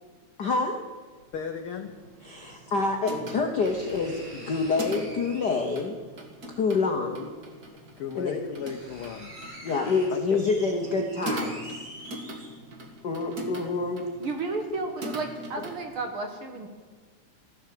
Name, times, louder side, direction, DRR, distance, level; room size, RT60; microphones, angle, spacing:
voice 1, 0.4-0.8 2.2-6.0 6.6-7.3 8.1-8.4 9.6-11.6 13.0-14.0 15.6-15.7, left 4 dB, 60° left, 2 dB, 1.1 m, -27 dB
sound 1, 1.2-1.3 2.7-2.8 3.6-6.0 7.3-7.4 8.1-8.2 8.4-12.8 13.3-13.4, right 1 dB, 80° right, 6.5 m, -45 dB
voice 2, 1.3-1.9 2.5-2.7 8.0-9.3 10.1-10.4, left 7 dB, 80° left, 6 dB, 1.2 m, -35 dB
sound 2, 1.8-15.8, right 1 dB, 35° right, 1.8 m, -41 dB
voice 3, 14.2-16.7, right 3 dB, 55° right, 5 dB, 1.8 m, -32 dB
14.5 x 12.0 x 7.7 m, 1.4 s
omnidirectional pair, 3.5 m